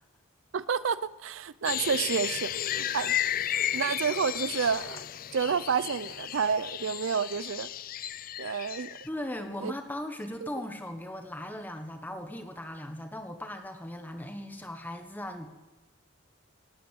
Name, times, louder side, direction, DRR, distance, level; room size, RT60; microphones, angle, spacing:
voice 1, 0.5-3.2 3.7-5.0 5.3-7.7 8.4-9.0 9.6-9.7 10.4-10.5, right 6 dB, 65° right, 17 dB, 0.5 m, -29 dB
sound 1, 1.6-9.1, left 11 dB, 45° left, 0.4 m, -33 dB
sound 2, 4.2-5.4, left 5 dB, 80° left, 2.1 m, -52 dB
voice 2, 9.0-15.5, left 1 dB, 10° left, 6 dB, 1.2 m, -38 dB
18.0 x 9.3 x 8.0 m, 1.1 s
head